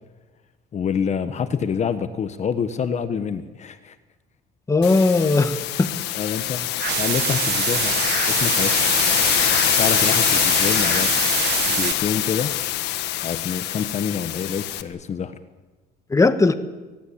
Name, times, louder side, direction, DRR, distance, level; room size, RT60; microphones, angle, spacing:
voice 1, 0.7-4.0 5.2-5.4 6.1-6.6 7.0-8.9 9.7-11.1 11.6-12.5 13.2-15.4, left 7 dB, 40° left, 11 dB, 1.3 m, -27 dB
voice 2, 4.7-5.9 16.1-16.5, left 3 dB, 20° left, 10 dB, 1.5 m, -18 dB
sound 1, 4.8-14.8, left 14 dB, 85° left, 1.5 m, -23 dB
sound 2, 6.8-11.9, right 14 dB, 75° right, 1.1 m, -25 dB
24.5 x 18.5 x 8.7 m, 1.2 s
cardioid pair, 110°, 17 cm